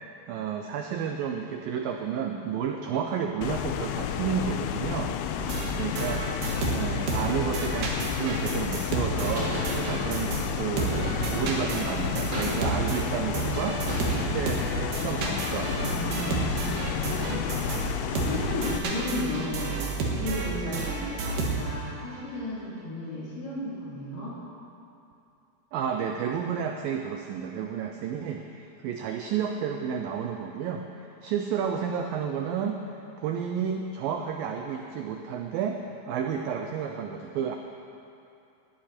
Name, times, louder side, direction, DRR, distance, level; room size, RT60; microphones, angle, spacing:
voice 1, 0.3-5.1 5.8-13.8 14.1-14.6 14.9-15.9 16.2-16.9 17.2-17.5 25.7-30.8 31.2-32.8 33.2-35.8 36.1-37.6, right 7 dB, 80° right, 3 dB, 2.0 m, -31 dB
sound 1, 3.4-18.8, left 10 dB, 80° left, 2.3 m, -31 dB
sound 2, 5.4-10.5 10.8-21.9, right 4 dB, 60° right, 3.0 m, -31 dB
sound 3, 9.3-9.8 10.9-11.5 12.3-12.9 13.9-14.5, right 1 dB, 25° right, 4.8 m, -34 dB
voice 2, 15.8-24.4, left 1 dB, 60° left, -8 dB, 5.8 m, -35 dB
19.5 x 13.0 x 4.4 m, 2.7 s
omnidirectional pair, 4.9 m